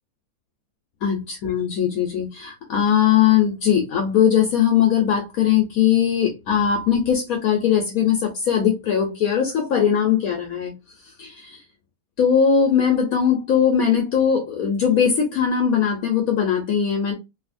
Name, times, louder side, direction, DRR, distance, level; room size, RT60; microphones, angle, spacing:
voice 1, 1.0-11.6 12.2-17.1, left 8 dB, 70° left, 1.1 m, -20 dB
2.8 x 2.8 x 2.5 m
omnidirectional pair, 1.7 m